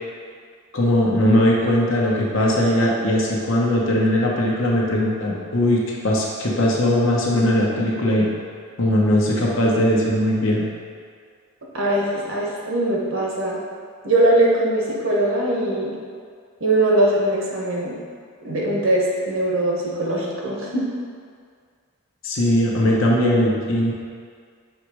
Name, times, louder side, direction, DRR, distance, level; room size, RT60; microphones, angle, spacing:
voice 1, 0.7-8.3 8.8-10.7 22.2-23.9, left 1 dB, 65° left, -3 dB, 1.0 m, -19 dB
voice 2, 11.7-13.6 14.0-15.9 16.6-17.9 18.4-20.8, right 1 dB, 65° right, -3 dB, 1.1 m, -21 dB
6.5 x 3.1 x 4.8 m, 2.1 s
head